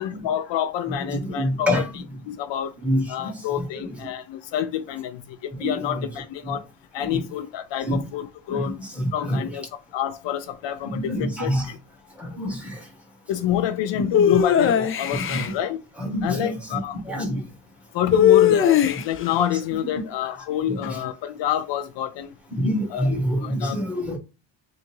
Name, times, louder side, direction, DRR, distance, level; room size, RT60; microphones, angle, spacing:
voice 1, 0.0-1.8 2.3-2.7 3.1-6.7 6.9-8.8 9.1-11.8 13.3-15.8 16.2-17.0 17.9-22.3 22.9-23.1 23.4-23.8, left 11 dB, 75° left, 0.6 m, -28 dB
voice 2, 1.0-1.9 2.8-3.5 3.8-3.9 5.6-6.1 6.4-6.6 7.1-7.3 7.8-8.0 8.5-9.5 10.8-11.7 12.2-12.9 13.9-14.1 15.1-15.5 16.0-16.8 17.0-17.4 18.4-18.5 20.7-21.0 22.6-24.2, equal, 5° right, 1.7 m, -27 dB
sound 1, 14.1-15.5 18.1-19.3, left 9 dB, 30° left, 0.4 m, -18 dB
3.8 x 2.6 x 4.5 m
cardioid pair, 120°, 45 cm